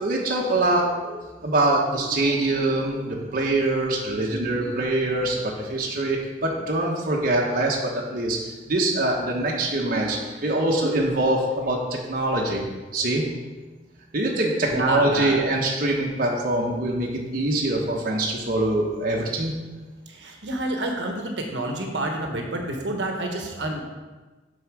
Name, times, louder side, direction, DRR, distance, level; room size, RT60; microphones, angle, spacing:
voice 1, 0.0-12.6 12.9-13.2 14.1-19.5, right 2 dB, 50° right, -2 dB, 1.1 m, -24 dB
voice 2, 14.7-15.4 20.1-23.8, right 1 dB, 70° right, 2 dB, 1.2 m, -28 dB
8.1 x 4.7 x 6.1 m, 1.2 s
head